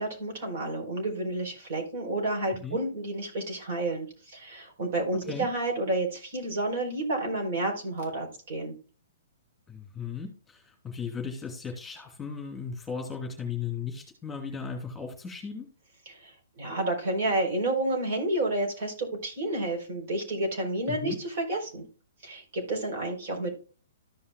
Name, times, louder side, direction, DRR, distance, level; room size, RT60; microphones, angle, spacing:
voice 1, 0.0-8.7 16.1-16.3 16.6-21.8 22.2-23.5, right 2 dB, 55° right, 2 dB, 4.2 m, -30 dB
voice 2, 9.7-15.7 20.9-21.2, left 5 dB, 10° left, 2 dB, 2.6 m, -36 dB
14.0 x 5.5 x 2.3 m, 0.37 s
hypercardioid pair, 150°, 0 cm